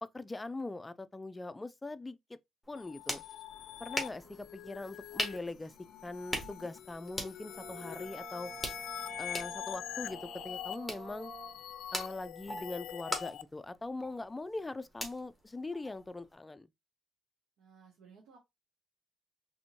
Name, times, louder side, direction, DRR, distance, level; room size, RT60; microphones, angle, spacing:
voice 1, 0.0-2.4 2.7-3.2 3.8-5.7 6.0-8.5 9.2-11.3 11.9-16.7, left 2 dB, 15° left, 0.4 m, -41 dB
sound 1, 2.6-16.3, left 1 dB, ahead, 1.8 m, -43 dB
sound 2, 2.7-13.4, left 11 dB, 80° left, 0.4 m, -44 dB
Brass instrument, 7.5-11.6, right 6 dB, 65° right, 0.6 m, -49 dB
voice 2, 17.6-18.4, right 5 dB, 85° right, 1.4 m, -58 dB
4.2 x 3.4 x 2.9 m
cardioid pair, 90°, 0 cm